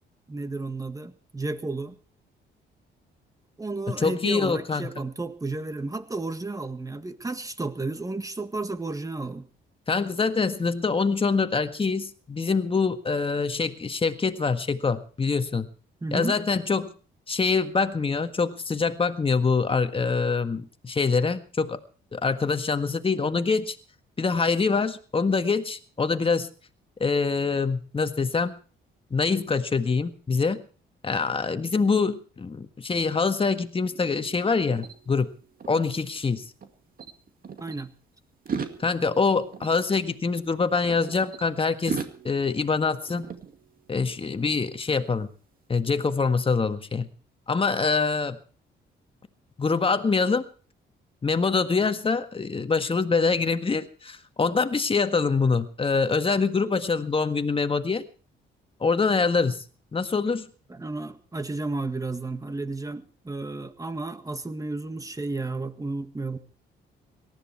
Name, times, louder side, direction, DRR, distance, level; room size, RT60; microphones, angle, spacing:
voice 1, 0.3-2.0 3.6-9.5 16.0-16.3 37.6-37.9 60.7-66.4, right 3 dB, 15° right, 10 dB, 1.8 m, -32 dB
voice 2, 4.0-4.9 9.9-15.7 16.1-16.9 17.3-21.8 22.1-23.8 24.2-26.5 27.0-28.6 29.1-30.6 31.0-35.3 35.7-36.4 38.8-43.3 43.9-45.3 45.7-47.1 47.5-48.4 49.6-50.5 51.2-58.0 58.8-59.6 59.9-60.5, left 4 dB, 25° left, 9 dB, 1.7 m, -25 dB
sound 1, 33.8-36.7 37.0-37.8 38.3-41.4 41.9-44.1, right 6 dB, 45° right, 2.2 m, -39 dB
18.5 x 14.0 x 4.6 m, 0.39 s
cardioid pair, 90°, 20 cm